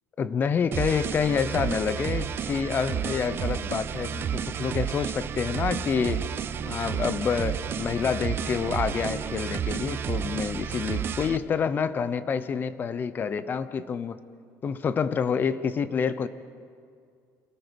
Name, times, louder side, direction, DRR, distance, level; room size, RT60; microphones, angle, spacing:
voice 1, 0.2-6.3 6.6-14.2 14.6-16.3, left 6 dB, 30° left, 13 dB, 0.7 m, -28 dB
sound 1, 0.7-11.4, right 8 dB, 35° right, 0.6 m, -31 dB
27.0 x 18.5 x 5.3 m, 2.2 s
cardioid pair, 160°, 7 cm